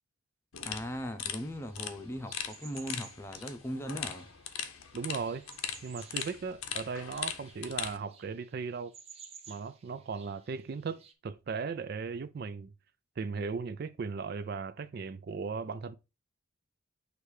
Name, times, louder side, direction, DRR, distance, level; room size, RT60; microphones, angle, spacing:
sound 1, 0.5-8.0, left 8 dB, 90° left, 0.9 m, -40 dB
voice 1, 0.6-4.3, equal, 10° left, 0.7 m, -39 dB
sound 2, 1.3-11.1, right 6 dB, 30° right, 0.7 m, -55 dB
voice 2, 4.9-5.5 5.8-8.9 9.5-12.7 13.2-15.9, right 5 dB, 45° right, 0.3 m, -37 dB
6.5 x 3.2 x 4.8 m
head